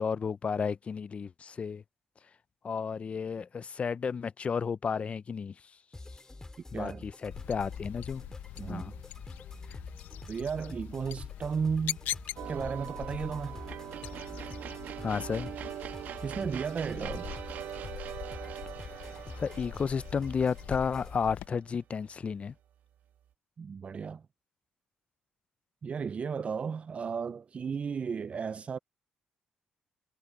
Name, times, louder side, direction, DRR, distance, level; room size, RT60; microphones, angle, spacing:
voice 1, 0.0-1.8 2.6-5.5 6.7-8.2 8.7-8.9 9.7-9.8 15.0-15.5 19.4-22.5, left 6 dB, 45° left, 0.6 m, -32 dB
sound 1, 5.9-21.2, left 2 dB, 20° left, 2.2 m, -46 dB
voice 2, 6.7-7.1 8.6-8.9 10.3-12.0 12.4-13.6 16.2-17.3 23.6-24.2 25.8-28.8, right 6 dB, 45° right, 0.5 m, -34 dB
sound 2, 7.3-21.5, left 13 dB, 80° left, 0.9 m, -43 dB
sound 3, 12.4-21.6, right 11 dB, 70° right, 1.2 m, -42 dB
supercardioid pair, 65°, 3 cm